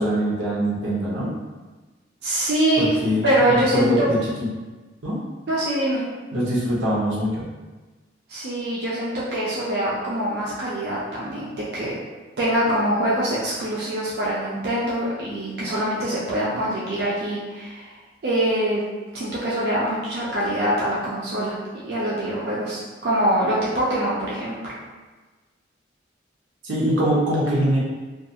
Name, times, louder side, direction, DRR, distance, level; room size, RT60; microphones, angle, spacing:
voice 1, 0.0-1.3 2.8-4.5 5.0-5.2 6.3-7.5 26.6-27.8, equal, 85° right, -5 dB, 0.8 m, -23 dB
voice 2, 2.2-2.9 3.2-4.1 5.5-6.0 8.3-12.0 12.4-17.9 18.2-18.8 19.1-24.6, right 1 dB, 55° right, -7 dB, 0.4 m, -24 dB
2.4 x 2.3 x 2.7 m, 1.3 s
head